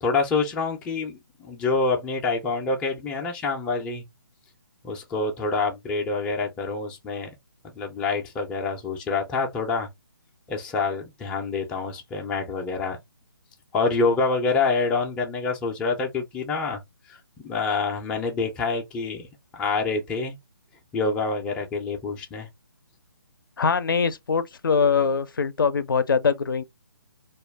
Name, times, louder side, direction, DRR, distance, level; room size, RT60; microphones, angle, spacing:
voice 1, 0.0-4.0 4.8-7.3 7.7-9.9 10.5-13.0 13.7-16.8 17.1-19.3 19.5-20.4 20.9-22.5, left 4 dB, 10° left, 0.4 m, -26 dB
voice 2, 23.6-26.6, left 5 dB, 65° left, 0.4 m, -22 dB
2.3 x 2.2 x 3.2 m
figure-of-eight pair, 145°, 12 cm